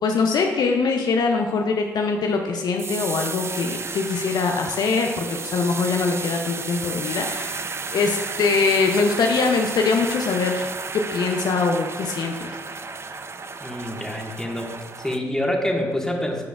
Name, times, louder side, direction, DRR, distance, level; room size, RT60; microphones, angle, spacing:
voice 1, 0.0-7.6 7.9-10.7 10.9-12.6, left 4 dB, 60° left, 3 dB, 0.6 m, -23 dB
sound 1, 2.8-15.2, right 4 dB, 35° right, 0.5 m, -33 dB
voice 2, 13.6-16.4, left 1 dB, 5° left, 0 dB, 1.6 m, -27 dB
10.0 x 5.0 x 2.4 m, 1.3 s
hypercardioid pair, 45°, 8 cm